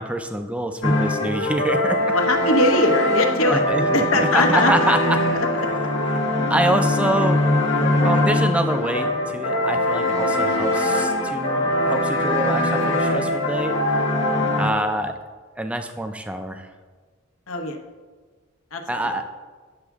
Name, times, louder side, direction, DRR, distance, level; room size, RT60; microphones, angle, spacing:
voice 1, 0.0-2.2 3.5-5.2 6.5-7.4 8.0-14.0 14.6-15.2 15.6-16.7 18.9-19.2, right 1 dB, 5° right, 7 dB, 0.4 m, -25 dB
sound 1, 0.8-14.7, left 1 dB, 60° left, 1.2 m, -22 dB
voice 2, 2.1-3.6 3.9-4.9 5.3-5.5 5.7-5.9 17.5-17.8 18.7-18.8, left 1 dB, 75° left, 4 dB, 1.0 m, -21 dB
9.7 x 7.1 x 3.5 m, 1.4 s
head